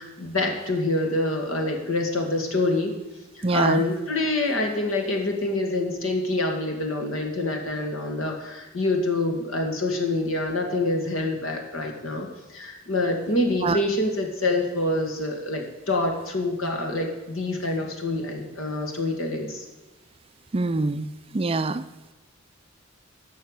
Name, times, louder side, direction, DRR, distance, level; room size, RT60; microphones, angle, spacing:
voice 1, 0.0-2.9 3.4-19.6, left 2 dB, 85° left, 2 dB, 2.3 m, -26 dB
voice 2, 3.4-3.8 13.6-13.8 20.5-21.1 21.3-21.8, right 3 dB, 25° right, 12 dB, 0.4 m, -24 dB
12.5 x 6.3 x 8.3 m, 1.1 s
head